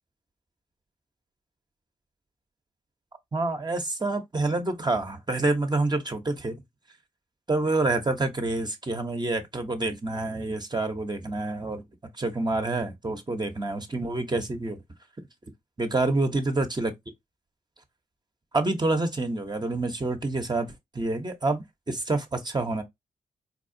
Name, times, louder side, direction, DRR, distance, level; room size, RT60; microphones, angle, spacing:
voice 1, 3.3-6.5 7.5-11.8 12.2-14.8 15.8-16.9 18.5-22.8, right 2 dB, 25° right, 0.9 m, -27 dB
4.3 x 2.4 x 2.7 m
cardioid pair, 50°, 16 cm